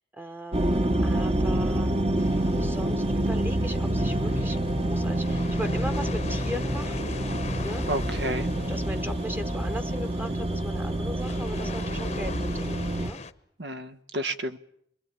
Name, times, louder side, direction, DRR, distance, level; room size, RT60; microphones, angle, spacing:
voice 1, 0.1-1.9 2.6-4.6 4.9-7.2 7.6-7.9 8.6-13.2, equal, 10° right, 1.1 m, -38 dB
sound 1, 0.5-13.1, right 1 dB, 35° right, 1.1 m, -27 dB
sound 2, 2.2-13.3, left 4 dB, 40° left, 1.0 m, -42 dB
voice 2, 7.9-8.5 13.6-14.6, right 1 dB, 70° right, 1.3 m, -31 dB
26.5 x 22.0 x 8.9 m
head